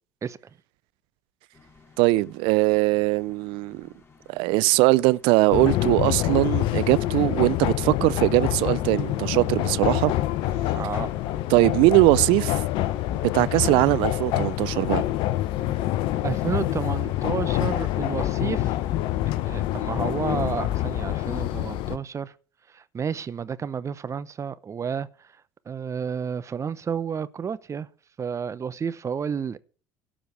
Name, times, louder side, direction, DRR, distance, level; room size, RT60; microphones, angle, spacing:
sound 1, 1.5-20.7, left 4 dB, 25° left, 4.1 m, -54 dB
voice 1, 2.0-3.9 4.3-10.1 11.5-12.6 13.3-15.0, right 21 dB, 65° right, 0.4 m, -21 dB
sound 2, 5.5-22.0, left 14 dB, 60° left, 0.8 m, -26 dB
voice 2, 10.7-11.1 16.2-18.7 19.4-22.3 22.7-25.1 25.7-27.9 28.2-29.6, right 6 dB, 30° right, 0.8 m, -31 dB
12.5 x 5.1 x 8.4 m
hypercardioid pair, 70°, 9 cm